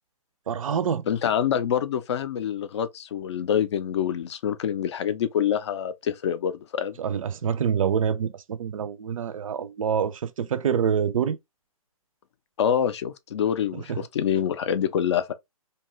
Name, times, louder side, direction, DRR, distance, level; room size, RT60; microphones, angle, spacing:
voice 1, 0.5-1.0 7.0-11.4 13.7-14.0, right 7 dB, 65° right, 0.4 m, -26 dB
voice 2, 1.1-7.0 12.6-15.3, left 9 dB, 50° left, 0.4 m, -26 dB
2.7 x 2.3 x 2.9 m
hypercardioid pair, 150°, 19 cm